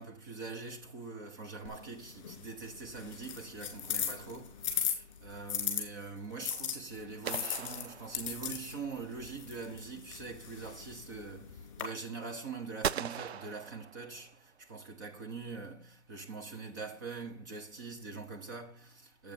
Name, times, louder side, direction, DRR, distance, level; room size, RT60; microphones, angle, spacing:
voice 1, 0.0-19.3, right 4 dB, 20° right, 0.9 m, -43 dB
sound 1, 1.7-5.8 6.4-11.8, left 8 dB, 30° left, 2.4 m, -38 dB
sound 2, 7.2-8.7 12.8-14.4, right 9 dB, 70° right, 0.5 m, -39 dB
8.0 x 5.5 x 5.3 m
hypercardioid pair, 165°, 34 cm